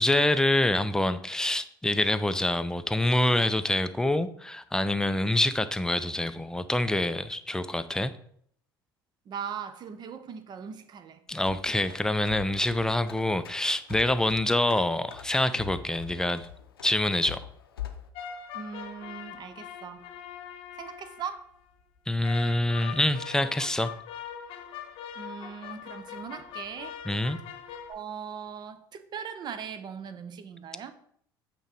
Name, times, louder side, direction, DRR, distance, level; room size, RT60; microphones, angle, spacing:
voice 1, 0.0-8.1 11.3-16.5 16.8-17.4 22.1-23.9 27.1-27.4, left 1 dB, 5° left, 0.4 m, -26 dB
voice 2, 9.3-11.2 18.5-20.1 20.8-21.5 25.2-27.0 27.9-30.9, right 7 dB, 35° right, 0.7 m, -39 dB
sound 1, 11.3-18.1, left 11 dB, 75° left, 0.6 m, -43 dB
sound 2, 18.1-21.5 22.2-27.9, left 8 dB, 50° left, 0.9 m, -42 dB
8.8 x 3.1 x 4.8 m
figure-of-eight pair, 60°, 12 cm